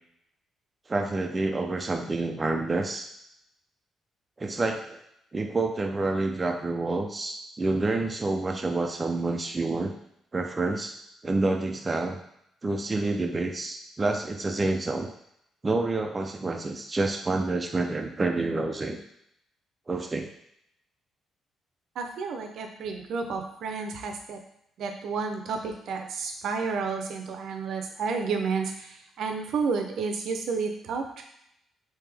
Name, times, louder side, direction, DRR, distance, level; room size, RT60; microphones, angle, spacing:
voice 1, 0.9-3.1 4.4-5.0 5.3-9.9 10.3-11.0 11.2-12.2 12.6-15.1 15.6-19.0 19.9-20.3, right 2 dB, 25° right, 3 dB, 0.4 m, -28 dB
voice 2, 22.0-24.4 24.8-31.2, right 5 dB, 75° right, 4 dB, 0.6 m, -31 dB
3.5 x 2.8 x 3.3 m, 0.76 s
cardioid pair, 90°, 0 cm